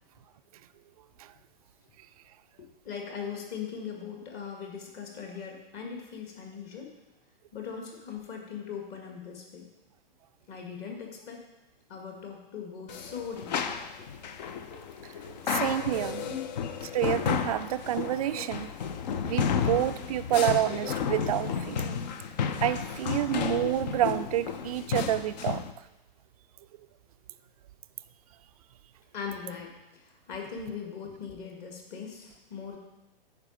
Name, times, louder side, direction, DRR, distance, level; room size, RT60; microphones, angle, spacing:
voice 1, 2.6-6.9 7.5-9.7 10.5-11.4 11.9-13.6 14.0-14.2 16.2-16.5 29.1-32.8, left 6 dB, 30° left, 1 dB, 1.8 m, -40 dB
sound 1, 12.9-25.7, left 7 dB, 45° left, 0.7 m, -32 dB
voice 2, 15.5-16.2 16.9-18.7 19.3-22.0 22.6-25.6, right 13 dB, 40° right, 13 dB, 0.4 m, -28 dB
9.6 x 4.9 x 5.1 m, 0.98 s
figure-of-eight pair, 115°, 29 cm